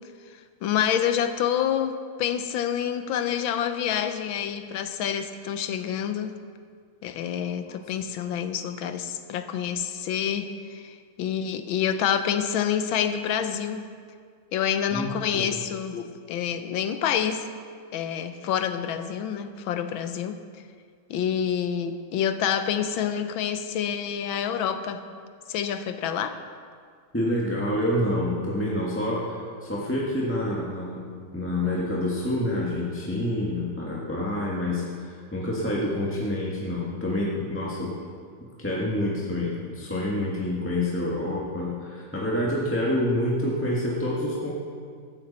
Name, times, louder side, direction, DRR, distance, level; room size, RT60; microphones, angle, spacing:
voice 1, 0.6-6.3 7.0-13.9 14.5-17.5 17.9-20.4 21.1-25.0 25.5-26.4, left 9 dB, 80° left, 9 dB, 1.5 m, -27 dB
voice 2, 14.9-15.5 27.1-31.1 31.3-37.9 38.6-44.5, left 1 dB, 5° left, -5 dB, 1.6 m, -27 dB
15.5 x 13.0 x 4.2 m, 2.1 s
omnidirectional pair, 2.2 m